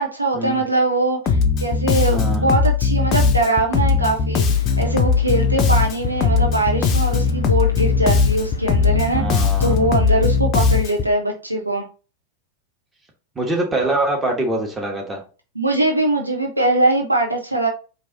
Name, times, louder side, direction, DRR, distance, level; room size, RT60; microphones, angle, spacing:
voice 1, 0.0-11.9 15.5-17.7, right 2 dB, 85° right, 2 dB, 0.8 m, -21 dB
Bass guitar, 1.3-11.1, left 5 dB, 35° left, 0.6 m, -19 dB
voice 2, 2.1-2.5 9.1-9.8 13.3-15.2, right 2 dB, 15° right, 1 dB, 1.4 m, -24 dB
sound 1, 4.5-10.4, left 6 dB, 75° left, 0.4 m, -30 dB
4.5 x 2.8 x 4.0 m, 0.35 s
figure-of-eight pair, 90°, 0 cm